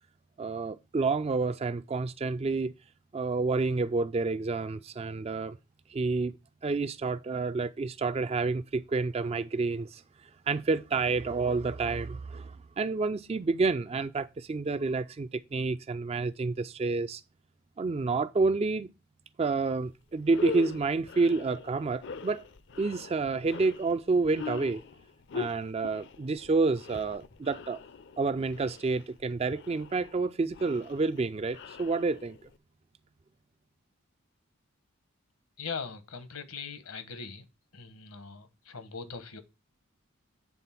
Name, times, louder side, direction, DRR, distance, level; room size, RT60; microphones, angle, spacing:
voice 1, 0.4-2.7 3.1-5.6 5.9-6.3 6.6-10.0 10.5-17.2 17.8-18.9 19.4-22.4 22.8-24.8 25.3-27.8 28.2-32.4, right 3 dB, 30° right, 0.3 m, -29 dB
sound 1, 19.7-19.8 20.2-32.6, left 5 dB, 55° left, 0.5 m, -42 dB
voice 2, 35.6-37.4 37.7-39.4, left 5 dB, 75° left, 1.1 m, -40 dB
8.4 x 3.8 x 5.8 m
head